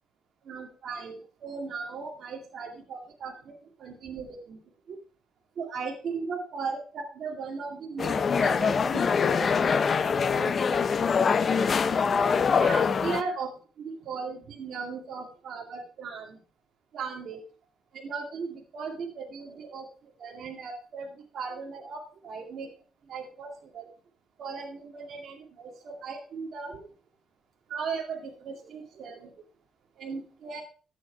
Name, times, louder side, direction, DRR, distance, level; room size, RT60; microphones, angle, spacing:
voice 1, 0.5-3.3 3.8-4.3 5.6-6.8 7.2-9.8 10.4-10.5 12.6-13.5 14.1-16.2 16.9-17.4 18.0-19.8 20.2-21.0 21.3-22.0 22.2-22.7 23.1-23.5 23.7-23.9 24.4-25.7 26.0-26.8 27.7-28.2 28.5-29.2 30.0-30.6, right 5 dB, 60° right, 1 dB, 2.2 m, -36 dB
sound 1, 8.0-13.2, left 6 dB, 40° left, 0.6 m, -24 dB
11.0 x 7.5 x 4.4 m, 0.38 s
cardioid pair, 120°, 0 cm